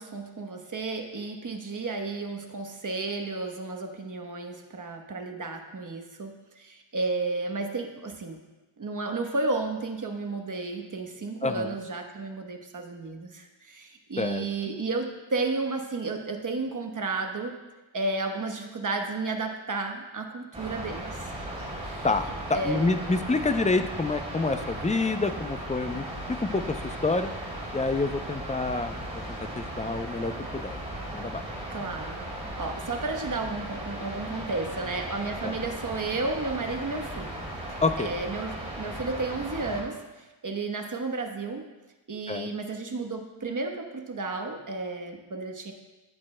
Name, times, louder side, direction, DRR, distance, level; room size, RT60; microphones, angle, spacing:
voice 1, 0.0-8.4 8.8-17.6 17.9-21.4 21.8-22.1 22.5-22.9 31.7-40.0 40.4-41.6 42.1-45.7, right 3 dB, 40° right, 4 dB, 1.1 m, -32 dB
voice 2, 11.4-11.7 14.2-14.4 22.0-22.2 22.5-27.3 27.7-29.0 29.6-30.8 31.1-31.4 35.4-35.5 37.8-38.1 42.3-42.5, left 3 dB, 15° left, 9 dB, 0.4 m, -27 dB
sound 1, 20.5-39.8, right 1 dB, 15° right, 3.3 m, -37 dB
13.5 x 8.5 x 2.2 m, 1.1 s
wide cardioid pair, 95°, 47 cm